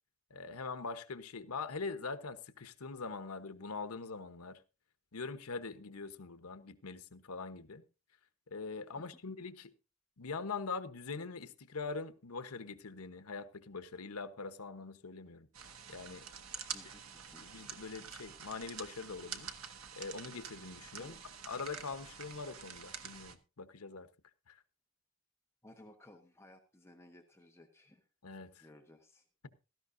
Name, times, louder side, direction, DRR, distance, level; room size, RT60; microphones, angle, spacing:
voice 1, 0.3-4.6 5.1-7.8 8.5-9.7 10.2-15.5 15.9-16.3 17.4-19.5 20.0-21.1 21.5-24.1 24.5-24.6 28.2-28.7, left 4 dB, 90° left, 1.1 m, -43 dB
sound 1, 15.5-23.3, right 7 dB, 75° right, 1.4 m, -47 dB
voice 2, 16.7-17.4 21.0-21.3 25.6-28.1 28.6-29.3, left 1 dB, 10° left, 1.1 m, -58 dB
16.5 x 13.5 x 2.7 m
head